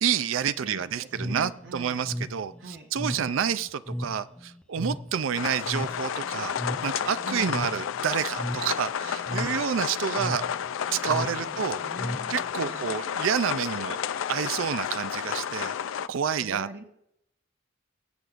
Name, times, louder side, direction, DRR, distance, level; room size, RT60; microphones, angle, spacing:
voice 1, 0.0-6.5 6.8-10.5 10.9-11.8 12.3-14.0 14.3-15.8 16.1-16.8, right 8 dB, 75° right, 14 dB, 0.4 m, -29 dB
voice 2, 0.6-2.0 2.6-3.4 7.2-7.8 11.4-13.0 16.3-16.8, right 2 dB, 55° right, 1 dB, 1.0 m, -43 dB
sound 1, 1.1-12.8, equal, 5° left, 0.5 m, -36 dB
sound 2, 5.3-16.1, left 8 dB, 75° left, 0.4 m, -32 dB
23.0 x 7.8 x 2.5 m, 0.81 s
head